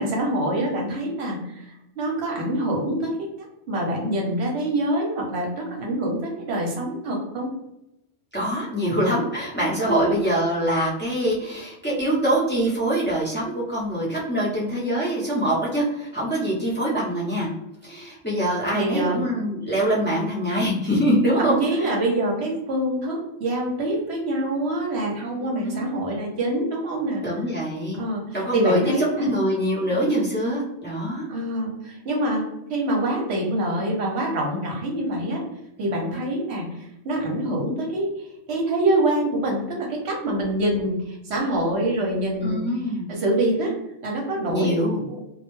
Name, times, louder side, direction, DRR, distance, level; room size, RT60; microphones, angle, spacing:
voice 1, 0.0-1.7 2.0-7.5 9.8-10.2 18.7-19.2 21.4-27.3 27.9-29.4 31.3-32.4 32.7-35.4 35.8-38.1 38.5-42.6 43.1-43.7 44.0-44.8 45.1-45.2, right 1 dB, 65° right, -1 dB, 0.9 m, -25 dB
voice 2, 8.3-17.5 17.8-21.9 25.4-25.9 27.2-28.0 28.3-31.3 42.4-43.1 44.5-45.0, right 1 dB, 15° left, -7 dB, 0.4 m, -24 dB
2.3 x 2.1 x 3.0 m, 0.86 s
omnidirectional pair, 1.3 m